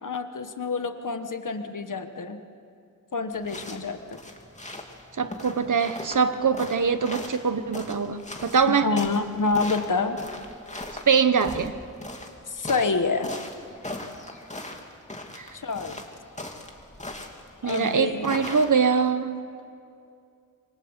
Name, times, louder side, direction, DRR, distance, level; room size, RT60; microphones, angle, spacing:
voice 1, 0.0-2.4 3.1-4.2 8.8-10.2 12.5-13.3 15.5-16.0 17.6-18.4, left 4 dB, 90° left, 7 dB, 1.5 m, -27 dB
sound 1, 3.3-19.1, left 1 dB, 25° left, 2.7 m, -39 dB
voice 2, 5.2-8.9 11.1-11.8 15.4-15.5 17.6-19.4, right 6 dB, 80° right, 10 dB, 1.2 m, -23 dB
26.5 x 24.5 x 8.2 m, 2.5 s
wide cardioid pair, 90°, 30 cm